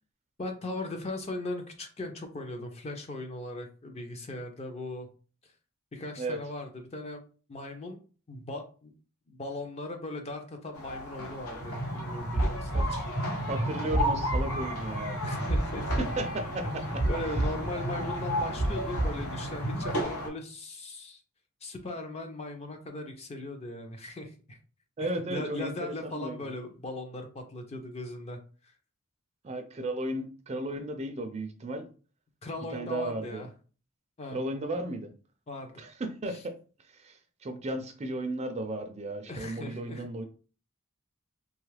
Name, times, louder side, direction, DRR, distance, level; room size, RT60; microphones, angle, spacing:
voice 1, 0.4-5.1 5.9-7.2 7.5-8.0 8.3-8.9 9.3-13.0 15.2-16.0 16.6-21.2 21.6-24.6 25.0-28.7 32.4-33.5 34.2-34.4 35.5-35.8 36.3-36.4 39.3-40.0, left 2 dB, 30° left, 5 dB, 0.5 m, -38 dB
sound 1, 10.7-20.3, equal, 85° left, 1.0 m, -35 dB
sound 2, 11.6-20.0, right 1 dB, 50° left, 1.1 m, -32 dB
voice 2, 13.4-15.2 16.0-17.0 17.5-17.6 25.0-26.5 29.4-31.9 32.7-33.4 34.3-35.1 35.8-36.5 36.9-40.2, right 1 dB, 30° right, 7 dB, 0.4 m, -35 dB
3.0 x 2.3 x 3.2 m, 0.38 s
head